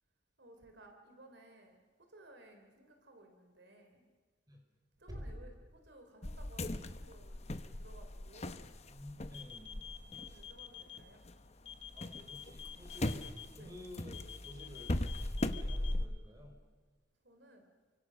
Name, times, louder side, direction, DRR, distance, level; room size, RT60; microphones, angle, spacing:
voice 1, 0.4-4.1 5.0-8.8 10.2-11.2 13.0-13.1 13.6-13.7 17.2-17.7, right 1 dB, 65° right, 5 dB, 3.7 m, -59 dB
sound 1, 6.2-11.4 11.7-16.1, left 1 dB, 35° left, 1.0 m, -39 dB
voice 2, 8.9-9.7 11.9-13.3 13.5-14.9 15.4-16.6, left 1 dB, 20° right, 2 dB, 4.8 m, -51 dB
sound 2, 9.3-11.0 11.7-13.5 14.1-15.9, left 10 dB, 65° left, 2.0 m, -48 dB
29.0 x 25.0 x 6.5 m, 1.4 s
head